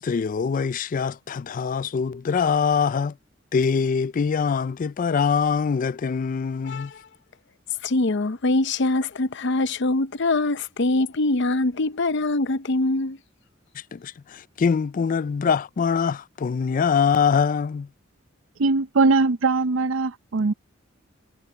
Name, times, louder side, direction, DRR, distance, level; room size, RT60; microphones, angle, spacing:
voice 1, 0.0-3.1 3.5-6.9 13.9-17.9, left 6 dB, 40° left, 0.3 m, -23 dB
voice 2, 6.7-7.0 7.8-13.2, left 2 dB, 65° left, 0.7 m, -23 dB
voice 3, 18.6-20.5, right 3 dB, 75° right, 0.6 m, -21 dB
head